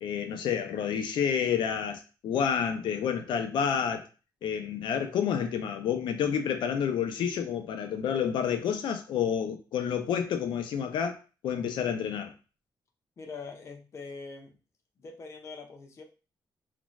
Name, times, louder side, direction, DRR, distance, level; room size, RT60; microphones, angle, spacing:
voice 1, 0.0-4.0 4.4-12.3, left 8 dB, 85° left, 6 dB, 0.5 m, -29 dB
voice 2, 13.2-14.5 15.0-16.0, left 4 dB, 35° left, 2 dB, 0.5 m, -43 dB
2.5 x 2.2 x 3.0 m, 0.33 s
wide cardioid pair, 155°, 8 cm